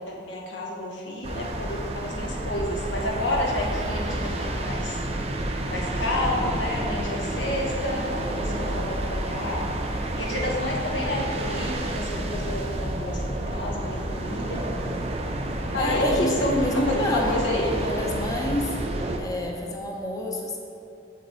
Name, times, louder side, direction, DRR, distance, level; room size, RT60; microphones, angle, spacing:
voice 1, 0.1-5.0 5.5-9.7 10.1-14.6 15.7-16.8 17.1-18.1, left 1 dB, 75° left, -1 dB, 1.3 m, -30 dB
sound 1, 1.2-19.2, right 1 dB, 35° right, 0.6 m, -30 dB
voice 2, 15.8-17.4 17.7-18.8 19.2-20.6, left 1 dB, 20° left, 0 dB, 0.8 m, -29 dB
8.0 x 5.2 x 4.4 m, 2.7 s
head